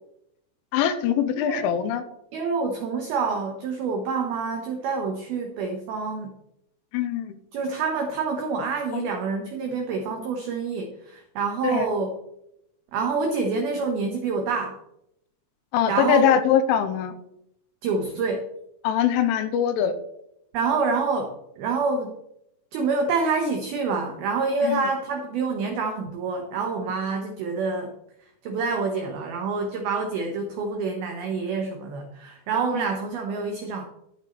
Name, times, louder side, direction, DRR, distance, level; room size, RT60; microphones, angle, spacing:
voice 1, 0.7-2.0 6.9-7.3 8.9-9.0 11.6-11.9 15.7-17.2 18.8-19.9 24.6-24.8, left 8 dB, 85° left, 10 dB, 3.1 m, -22 dB
voice 2, 2.3-6.4 7.5-12.1 12.9-14.8 15.9-16.3 17.8-18.5 20.5-22.1 22.7-27.9 28.4-33.8, right 4 dB, 85° right, 3 dB, 2.1 m, -27 dB
12.0 x 8.5 x 3.1 m, 0.79 s
omnidirectional pair, 5.8 m